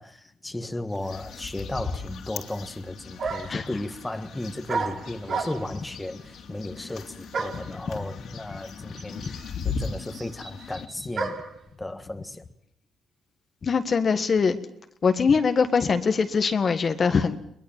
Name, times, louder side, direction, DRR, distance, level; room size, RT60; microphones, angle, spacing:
voice 1, 0.0-11.4 11.8-12.4, left 1 dB, 10° left, 8 dB, 1.7 m, -35 dB
sound 1, 0.9-10.9, left 5 dB, 70° left, 3.2 m, -38 dB
sound 2, 2.7-2.8 3.2-3.7 4.7-5.8 7.3-7.7 8.7-8.8 9.0-11.6, right 4 dB, 55° right, 5.0 m, -32 dB
voice 2, 13.6-14.6 15.0-17.4, left 5 dB, 40° left, 9 dB, 1.6 m, -22 dB
22.5 x 21.0 x 7.4 m, 0.69 s
cardioid pair, 90°, 0 cm